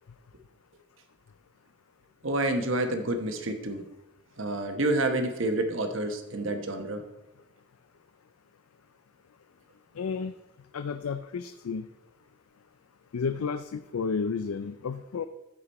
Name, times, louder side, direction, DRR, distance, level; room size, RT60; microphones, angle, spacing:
voice 1, 2.2-3.8 4.4-7.0, right 2 dB, 65° right, 6 dB, 1.1 m, -28 dB
voice 2, 10.0-10.3 10.7-11.9 13.1-15.3, left 5 dB, 85° left, 10 dB, 0.4 m, -32 dB
14.5 x 5.0 x 4.2 m, 0.95 s
head